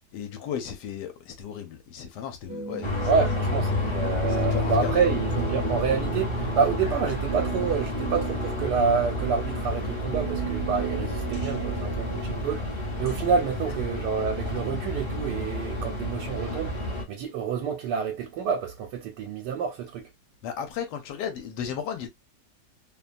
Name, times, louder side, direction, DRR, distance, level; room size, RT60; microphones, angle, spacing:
voice 1, 0.1-3.1 4.3-5.1 20.4-22.1, left 8 dB, 90° left, 1.2 m, -35 dB
sound 1, 2.5-12.4, right 7 dB, 45° right, 0.7 m, -36 dB
sound 2, 2.8-17.0, left 2 dB, 30° left, 0.6 m, -30 dB
voice 2, 3.1-16.7 17.1-20.1, right 6 dB, 85° right, 1.2 m, -28 dB
2.8 x 2.2 x 2.4 m
omnidirectional pair, 1.8 m